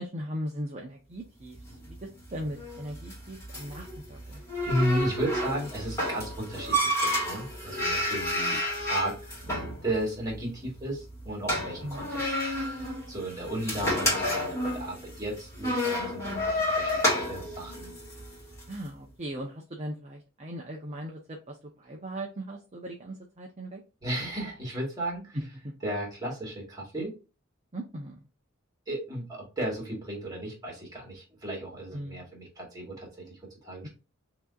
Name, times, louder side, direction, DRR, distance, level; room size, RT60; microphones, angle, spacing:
voice 1, 0.0-1.6 1.9-4.4 11.8-12.1 18.7-23.8 25.3-25.4 27.7-28.2 31.9-32.2 33.8-33.9, right 1 dB, 35° right, 0 dB, 0.8 m, -38 dB
sound 1, 1.5-18.8, equal, 15° left, 2.1 m, -31 dB
voice 2, 4.7-8.6 8.9-9.2 9.8-17.9 24.0-25.4 25.8-27.2 28.9-33.9, right 1 dB, 20° right, -2 dB, 2.3 m, -34 dB
6.0 x 3.0 x 2.4 m, 0.31 s
head